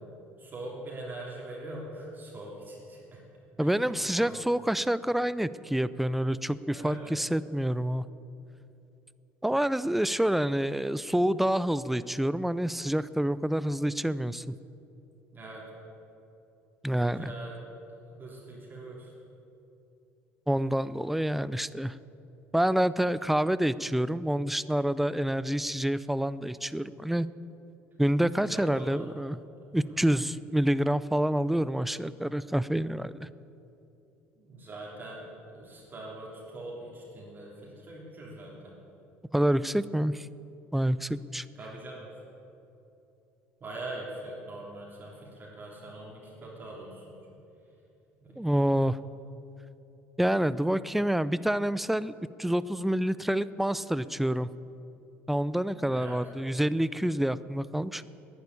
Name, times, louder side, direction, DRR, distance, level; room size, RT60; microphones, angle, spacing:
voice 1, 0.4-3.2 3.6-3.9 4.2-4.4 6.7-7.1 15.3-15.6 16.9-17.6 17.9-19.1 28.5-29.1 29.8-30.0 34.4-38.7 41.5-42.1 43.6-47.3 48.2-48.7 55.9-56.2, right 2 dB, 35° right, -3 dB, 3.4 m, -43 dB
voice 2, 3.6-8.0 9.4-14.5 16.8-17.3 20.5-22.0 22.5-27.3 28.0-29.4 29.7-33.3 39.3-40.3 40.7-41.5 48.4-49.0 50.2-54.5 55.3-58.0, right 1 dB, 5° right, 17 dB, 0.4 m, -27 dB
11.0 x 9.6 x 9.7 m, 2.8 s
supercardioid pair, 80°, 6 cm